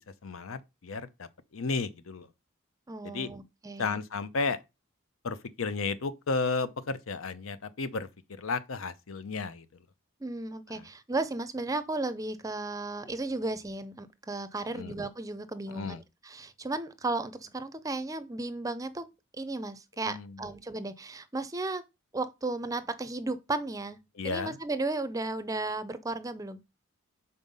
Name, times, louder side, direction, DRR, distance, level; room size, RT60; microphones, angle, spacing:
voice 1, 0.2-2.3 3.0-3.3 3.8-4.6 5.2-8.1 8.4-9.7 10.7-10.8 14.7-14.9 15.7-16.0 20.1-20.4 24.2-24.6, left 4 dB, 75° left, 0.7 m, -33 dB
voice 2, 2.9-4.0 10.2-19.0 19.3-21.8 22.1-24.0 24.2-26.6, right 2 dB, 15° right, 0.5 m, -34 dB
5.5 x 4.1 x 5.4 m
head